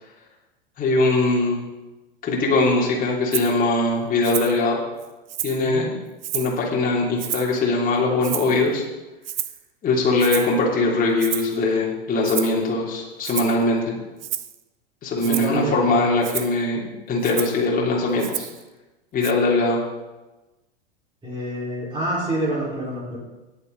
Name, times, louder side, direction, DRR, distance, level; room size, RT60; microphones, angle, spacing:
voice 1, 0.8-1.6 2.2-4.8 5.4-5.9 6.3-8.8 9.8-14.0 15.0-18.5 19.1-19.8, left 2 dB, 30° left, -3 dB, 3.1 m, -21 dB
Rattle (instrument), 3.3-3.5 4.2-4.6 5.0-5.7 6.2-6.6 7.2-7.6 8.2-8.7 9.2-9.6 10.2-10.6 11.2-11.6 12.2-12.6 13.2-13.6 14.2-14.6 15.2-15.6 16.2-16.5 17.2-17.6 18.2-18.6 19.2-19.3, right 11 dB, 70° right, 0.7 m, -30 dB
voice 2, 15.2-16.0 21.2-23.2, right 1 dB, 15° right, -6 dB, 4.5 m, -27 dB
18.5 x 6.9 x 4.0 m, 1.1 s
hypercardioid pair, 95°, 30 cm